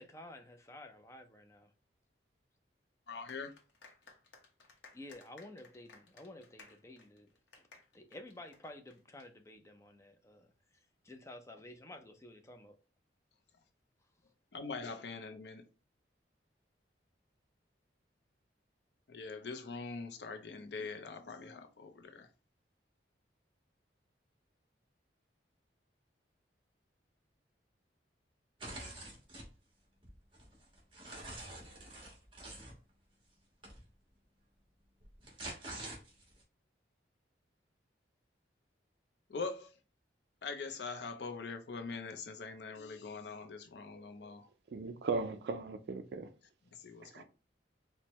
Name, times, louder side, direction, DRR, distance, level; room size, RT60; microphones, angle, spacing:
voice 1, 0.0-1.7 4.9-7.3 7.9-12.8, left 1 dB, 15° left, 0.4 m, -52 dB
voice 2, 3.1-3.5 14.5-15.6 19.1-22.3 39.3-39.7 40.4-44.5 46.7-47.2, left 4 dB, 70° left, 0.5 m, -43 dB
sound 1, 3.3-9.2, left 4 dB, 85° left, 0.9 m, -59 dB
sound 2, 28.6-29.5 30.0-32.7 33.6-33.8 35.0-36.4, right 1 dB, 30° right, 1.2 m, -46 dB
voice 3, 44.7-46.3 47.1-47.2, right 4 dB, 60° right, 0.3 m, -37 dB
4.4 x 2.2 x 3.0 m
head